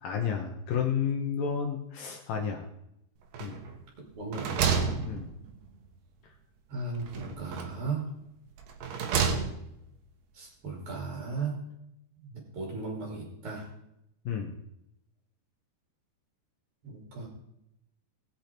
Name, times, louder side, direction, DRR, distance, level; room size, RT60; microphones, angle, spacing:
voice 1, 0.0-2.7 3.4-3.6 5.1-5.3 14.3-14.5, left 7 dB, 70° left, 3 dB, 2.4 m, -31 dB
sound 1, 3.3-3.8 4.2-5.8 7.0-7.9 8.6-9.8, right 6 dB, 65° right, 2.4 m, -31 dB
voice 2, 4.0-4.7 6.7-8.1 10.3-11.6 12.2-13.7 16.8-17.3, right 4 dB, 35° right, -1 dB, 2.9 m, -36 dB
19.0 x 8.3 x 4.5 m, 0.81 s
omnidirectional pair, 5.0 m